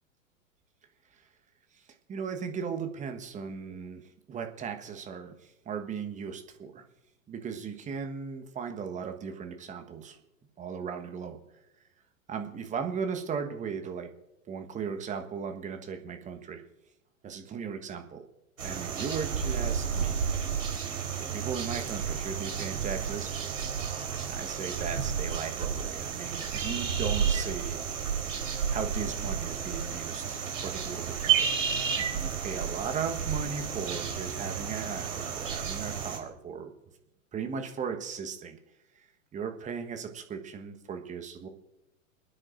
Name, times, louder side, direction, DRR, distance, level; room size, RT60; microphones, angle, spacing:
voice 1, 2.1-4.0 4.3-6.8 7.3-10.2 10.6-11.4 12.3-14.1 14.5-16.6 17.2-18.2 18.6-20.4 21.2-23.9 24.3-27.8 28.2-28.3 28.7-31.5 32.0-36.7 37.3-38.6 39.3-41.5, right 6 dB, 20° right, 5 dB, 1.3 m, -37 dB
sound 1, 18.6-36.2, right 7 dB, 65° right, 3.7 m, -31 dB
28.5 x 10.0 x 2.6 m, 0.95 s
figure-of-eight pair, 100°, 41 cm